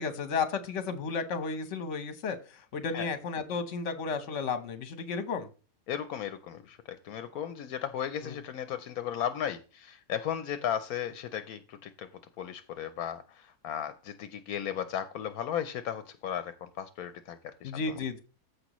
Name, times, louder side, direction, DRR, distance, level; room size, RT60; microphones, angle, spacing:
voice 1, 0.0-5.5 8.2-8.3 17.6-18.2, left 5 dB, 55° left, 10 dB, 1.3 m, -33 dB
voice 2, 5.9-12.1 12.4-17.7, left 9 dB, 80° left, 11 dB, 1.1 m, -35 dB
14.5 x 5.1 x 3.0 m, 0.34 s
omnidirectional pair, 1.5 m